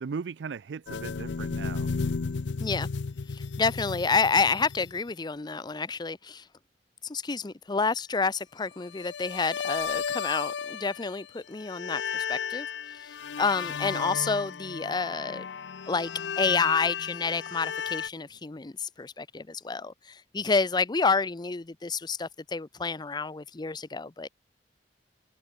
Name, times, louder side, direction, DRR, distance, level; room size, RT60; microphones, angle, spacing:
voice 1, 0.0-1.9, right 5 dB, 80° right, 0.4 m, -37 dB
sound 1, 0.9-5.1 8.9-11.3 11.6-18.1, left 6 dB, 90° left, 0.6 m, -34 dB
voice 2, 3.3-6.4 7.1-12.7 13.4-15.4 15.9-16.1 16.4-19.9 20.3-24.3, left 4 dB, 25° left, 0.6 m, -29 dB
head